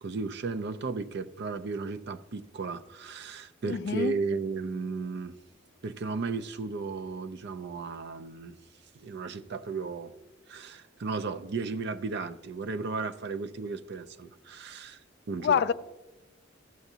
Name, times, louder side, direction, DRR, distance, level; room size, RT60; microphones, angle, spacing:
voice 1, 0.0-5.4 5.8-8.6 9.0-10.1 10.5-15.0 15.3-15.6, right 4 dB, 55° right, 0.4 m, -34 dB
voice 2, 3.6-4.1 15.4-15.7, left 7 dB, 55° left, 0.3 m, -26 dB
14.5 x 7.0 x 2.8 m
head